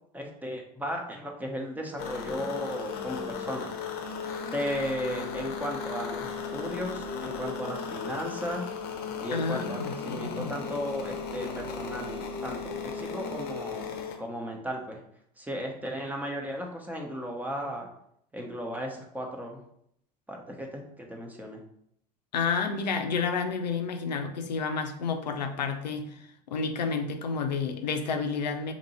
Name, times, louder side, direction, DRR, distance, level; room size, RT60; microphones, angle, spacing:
voice 1, 0.1-3.7 4.5-8.7 9.2-13.8 14.2-15.0 15.4-17.9 18.3-19.6 20.3-21.6, equal, 10° right, 1 dB, 0.8 m, -35 dB
sound 1, 2.0-14.2, left 5 dB, 50° left, 0.7 m, -36 dB
voice 2, 9.3-10.5 22.3-28.7, left 5 dB, 90° left, 7 dB, 0.5 m, -30 dB
2.9 x 2.6 x 4.1 m, 0.70 s
hypercardioid pair, 80°, 21 cm